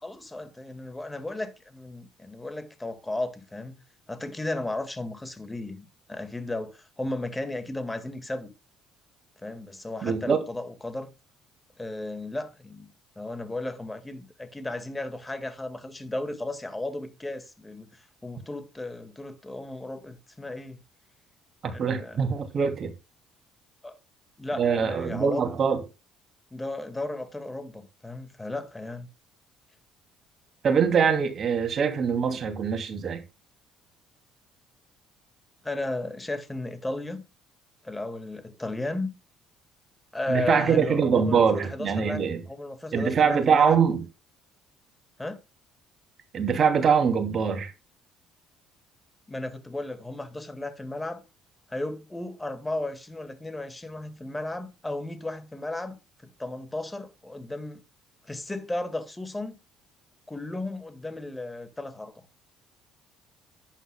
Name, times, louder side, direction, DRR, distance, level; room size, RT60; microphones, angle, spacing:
voice 1, 0.0-3.8 4.1-8.5 9.4-11.1 11.8-17.9 18.2-20.8 21.7-22.2 23.8-24.0 24.4-25.5 26.5-29.1 35.6-37.2 37.8-39.1 40.1-43.8 45.2-45.4 49.3-51.2 51.7-57.8 58.3-59.6 60.3-62.1, left 2 dB, 15° left, 1.8 m, -34 dB
voice 2, 10.0-10.4 21.6-22.9 24.6-25.8 30.6-33.2 40.3-42.4 42.9-44.0 46.3-47.7, right 6 dB, 50° right, 2.7 m, -23 dB
11.0 x 9.2 x 2.3 m
supercardioid pair, 75°, 0 cm